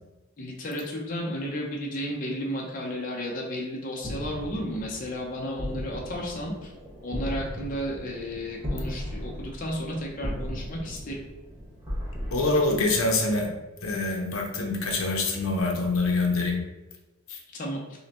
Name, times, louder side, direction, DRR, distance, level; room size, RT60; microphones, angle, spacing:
voice 1, 0.4-6.7 7.0-11.2 17.5-17.8, equal, 40° left, -2 dB, 0.6 m, -33 dB
sound 1, 4.0-13.5, equal, 15° right, 1.1 m, -37 dB
voice 2, 12.3-13.5 13.8-16.6 17.3-17.4, left 3 dB, 75° left, 2 dB, 0.7 m, -25 dB
5.5 x 2.1 x 2.9 m, 1.1 s
head